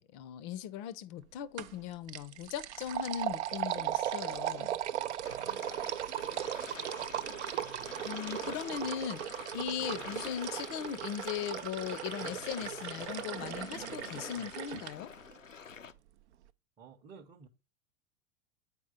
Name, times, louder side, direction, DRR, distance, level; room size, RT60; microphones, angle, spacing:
voice 1, 0.0-4.7 8.0-15.1, left 9 dB, 35° left, 0.5 m, -39 dB
sound 1, 1.6-1.8 2.1-14.9, right 11 dB, 60° right, 0.5 m, -37 dB
sound 2, 3.4-15.7, right 8 dB, 80° right, 0.8 m, -59 dB
sound 3, 5.2-15.9, left 6 dB, 85° left, 0.6 m, -48 dB
voice 2, 5.4-5.9 9.6-9.9 14.4-14.5 16.8-17.5, right 6 dB, 20° right, 0.7 m, -54 dB
8.2 x 4.7 x 4.2 m
figure-of-eight pair, 85°, 38 cm